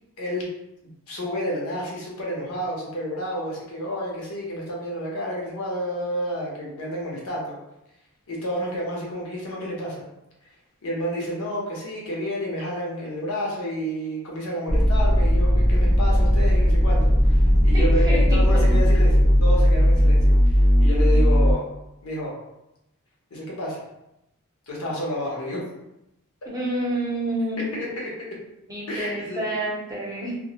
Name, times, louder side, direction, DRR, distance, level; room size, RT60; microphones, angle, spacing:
voice 1, 0.2-0.5 1.1-7.5 8.3-10.0 10.8-21.7 22.0-22.3 23.3-23.8 24.7-25.6 27.7-28.1 28.9-29.4, equal, 80° left, -3 dB, 0.7 m, -30 dB
sound 1, 14.7-21.5, equal, 35° left, 0.4 m, -17 dB
voice 2, 17.7-18.2 18.7-18.8 26.5-27.7 28.7-30.4, right 1 dB, 15° right, -5 dB, 0.7 m, -28 dB
2.2 x 2.1 x 2.8 m, 0.88 s
head